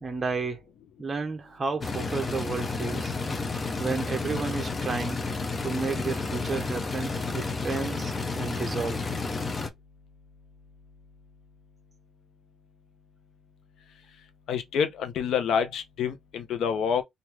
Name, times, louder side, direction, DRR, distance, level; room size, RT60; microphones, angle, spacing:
voice 1, 0.0-0.6 1.0-3.1 3.8-5.2 5.6-9.0, right 4 dB, 30° right, 0.7 m, -32 dB
sound 1, 1.8-9.7, left 3 dB, 30° left, 0.7 m, -31 dB
voice 2, 14.5-17.0, left 7 dB, 75° left, 0.8 m, -27 dB
3.0 x 2.6 x 3.3 m
cardioid pair, 90°, 0 cm